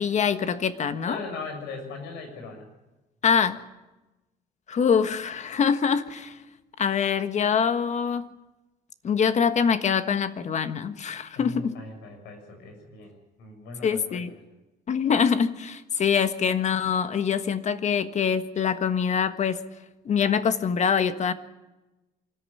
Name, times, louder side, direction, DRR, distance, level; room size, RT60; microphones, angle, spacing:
voice 1, 0.0-1.2 3.2-3.6 4.7-6.4 6.8-8.3 9.0-11.7 13.8-14.4 14.9-19.6 20.0-21.3, left 7 dB, 45° left, 11 dB, 1.4 m, -24 dB
voice 2, 1.1-2.7 11.3-14.2, left 4 dB, 85° left, 5 dB, 6.6 m, -39 dB
25.0 x 14.0 x 10.0 m, 1.0 s
cardioid pair, 110°, 17 cm